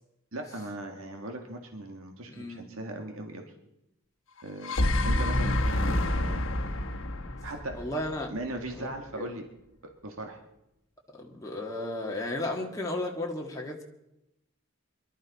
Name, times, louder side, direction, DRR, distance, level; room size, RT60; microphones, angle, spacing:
voice 1, 0.3-3.5 4.4-4.8 5.0-6.5 7.4-7.8 8.3-9.4 10.0-10.4, right 1 dB, 90° right, 3 dB, 1.8 m, -38 dB
voice 2, 2.3-2.7 7.7-8.3 8.7-9.4 11.1-13.8, left 1 dB, 15° left, -1 dB, 1.8 m, -34 dB
sound 1, 4.4-8.6, left 1 dB, 70° left, 1.3 m, -28 dB
24.0 x 12.5 x 4.2 m, 0.87 s
head